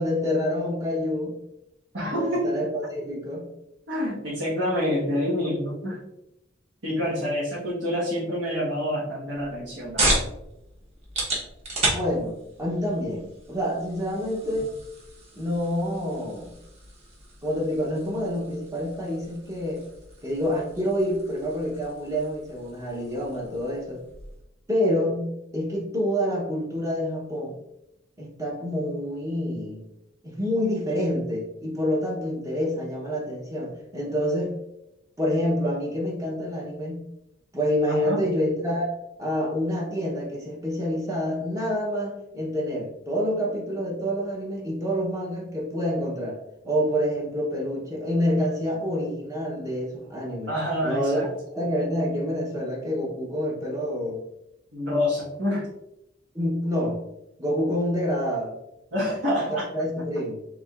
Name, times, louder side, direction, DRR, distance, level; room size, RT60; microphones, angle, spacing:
voice 1, 0.0-1.3 2.1-3.5 11.9-14.7 15.3-16.5 17.4-19.8 20.2-24.0 24.7-27.6 28.2-29.9 30.2-34.6 35.2-37.1 37.5-38.9 39.2-50.5 50.8-54.2 56.3-57.0 57.4-58.5 59.7-60.5, equal, 15° right, -2 dB, 0.8 m, -27 dB
voice 2, 1.9-2.5 3.9-6.0 6.8-10.3 37.9-38.2 50.5-51.3 54.7-55.7 58.9-59.7, left 1 dB, 80° right, -9 dB, 1.4 m, -27 dB
sound 1, 9.3-24.5, right 2 dB, 35° right, 1.2 m, -34 dB
4.7 x 3.5 x 2.4 m, 0.86 s
head